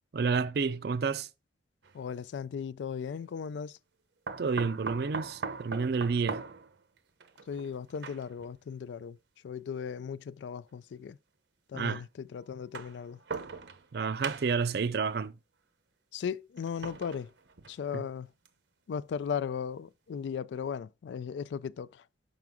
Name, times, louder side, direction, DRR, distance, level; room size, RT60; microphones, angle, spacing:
voice 1, 0.1-1.3 4.4-6.4 11.7-12.0 13.9-15.3 17.9-18.0, right 5 dB, 60° right, 0.4 m, -30 dB
sound 1, 1.8-2.0 4.3-8.5 9.5-9.6 10.8-10.9 12.5-13.9 14.2-14.7 16.6-18.0 18.5-18.6 18.9-19.0, right 4 dB, 75° right, 0.8 m, -40 dB
voice 2, 1.9-3.8 7.5-9.2 9.4-11.2 11.7-13.2 16.1-17.3 17.7-18.3 18.9-22.0, left 7 dB, 75° left, 0.3 m, -37 dB
6.1 x 5.9 x 3.6 m
head